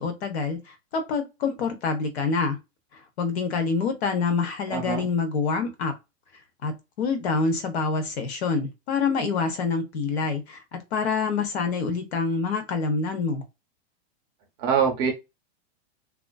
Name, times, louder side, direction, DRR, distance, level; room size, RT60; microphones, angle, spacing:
voice 1, 0.0-2.6 2.9-5.9 6.6-13.5, left 4 dB, 70° left, 0.9 m, -26 dB
voice 2, 4.7-5.1 14.6-15.1, right 6 dB, 25° right, 0.5 m, -24 dB
2.4 x 2.3 x 2.3 m
supercardioid pair, 170°, 33 cm